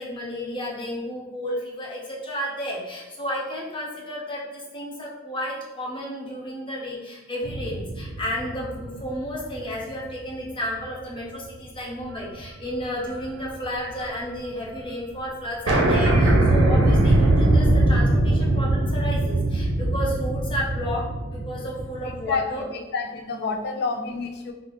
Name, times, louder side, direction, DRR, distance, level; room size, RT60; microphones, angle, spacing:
voice 1, 0.0-22.7 23.4-23.5, equal, 25° left, -4 dB, 0.7 m, -32 dB
sound 1, 7.4-10.0 10.5-10.6 12.1-12.5 12.7-14.2 14.5-14.6 14.7-14.8 15.2-15.3 15.7-22.4, right 1 dB, 65° right, 0.6 m, -21 dB
voice 2, 22.0-22.5 22.7-24.5, left 4 dB, 55° left, 5 dB, 0.4 m, -29 dB
3.8 x 2.0 x 3.3 m, 1.1 s
head